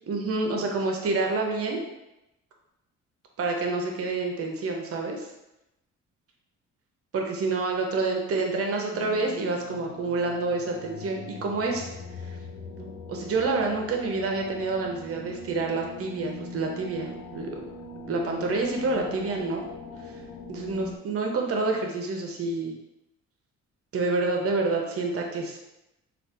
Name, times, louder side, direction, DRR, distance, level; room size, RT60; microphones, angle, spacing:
voice 1, 0.1-1.8 3.4-5.3 7.1-11.9 12.2-12.4 12.8-17.6 18.1-19.6 20.5-22.7 23.9-25.6, right 3 dB, 50° right, 2 dB, 0.7 m, -28 dB
sound 1, 8.9-21.0, left 4 dB, 75° left, 0.6 m, -41 dB
3.3 x 2.4 x 2.6 m, 0.92 s
cardioid pair, 90°, 30 cm